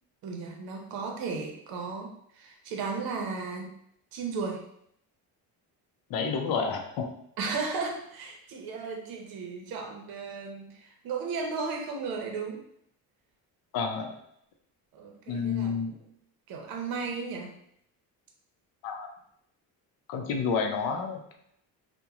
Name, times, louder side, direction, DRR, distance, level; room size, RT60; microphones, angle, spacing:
voice 1, 0.2-3.7 4.1-4.7 7.4-12.6 14.9-15.7 16.5-17.6, right 4 dB, 65° right, 2 dB, 0.7 m, -35 dB
voice 2, 6.1-7.1 13.7-14.1 15.3-15.9 18.8-19.1 20.1-21.4, left 5 dB, 65° left, 4 dB, 0.6 m, -29 dB
2.9 x 2.2 x 2.4 m, 0.72 s
cardioid pair, 140°, 38 cm